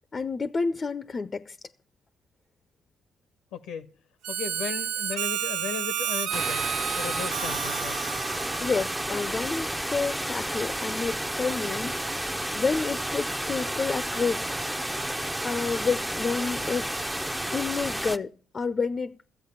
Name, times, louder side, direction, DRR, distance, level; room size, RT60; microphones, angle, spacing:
voice 1, 0.1-1.6 8.6-14.4 15.4-17.0 17.5-19.1, left 4 dB, 40° left, 0.5 m, -29 dB
voice 2, 3.5-3.9 4.3-6.7 6.9-8.0, left 8 dB, 85° left, 0.7 m, -36 dB
Harmonica, 4.2-9.4, right 9 dB, 80° right, 0.5 m, -31 dB
sound 1, 6.3-18.2, right 1 dB, 10° right, 0.6 m, -31 dB
13.0 x 8.0 x 6.7 m
hypercardioid pair, 50°, 0 cm